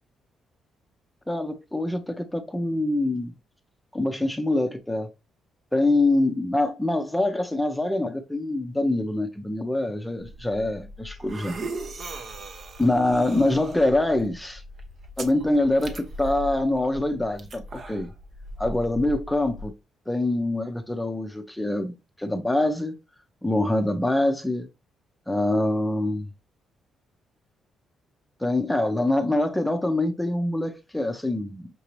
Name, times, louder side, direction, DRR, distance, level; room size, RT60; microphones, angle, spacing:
voice 1, 1.3-3.3 3.9-5.1 5.7-11.6 12.8-14.6 15.2-18.1 18.6-19.7 20.1-22.9 23.4-24.7 25.3-26.3 28.4-31.7, left 1 dB, 5° left, 0.6 m, -25 dB
sound 1, 10.2-19.7, right 1 dB, 55° right, 0.8 m, -39 dB
5.9 x 2.7 x 3.1 m
cardioid pair, 90°, 0 cm